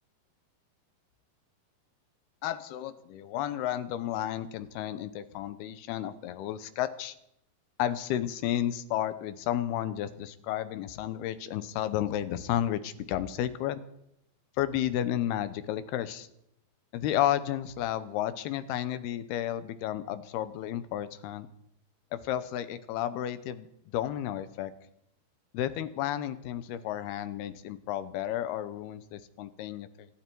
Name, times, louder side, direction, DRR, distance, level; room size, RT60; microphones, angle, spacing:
voice 1, 2.4-7.1 7.8-13.8 14.6-16.3 16.9-21.5 22.1-23.7 23.9-24.7 25.5-30.1, left 12 dB, 80° left, 13 dB, 2.8 m, -32 dB
25.5 x 11.5 x 4.6 m, 0.77 s
omnidirectional pair, 4.6 m